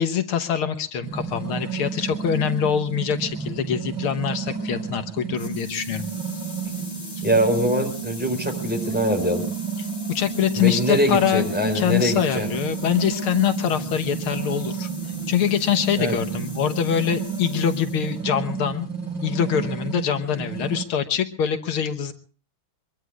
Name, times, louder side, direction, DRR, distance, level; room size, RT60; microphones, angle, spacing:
voice 1, 0.0-6.1 7.2-7.3 9.8-11.4 11.7-14.9 15.3-18.9 19.2-22.1, left 9 dB, 85° left, 8 dB, 2.1 m, -24 dB
sound 1, 1.0-20.9, right 5 dB, 65° right, 7.0 m, -32 dB
sound 2, 5.3-18.3, right 3 dB, 25° left, 2.0 m, -36 dB
voice 2, 7.2-9.4 10.6-12.5 16.0-16.1, equal, 5° right, 3 dB, 5.0 m, -23 dB
24.0 x 22.5 x 2.5 m, 0.38 s
omnidirectional pair, 2.3 m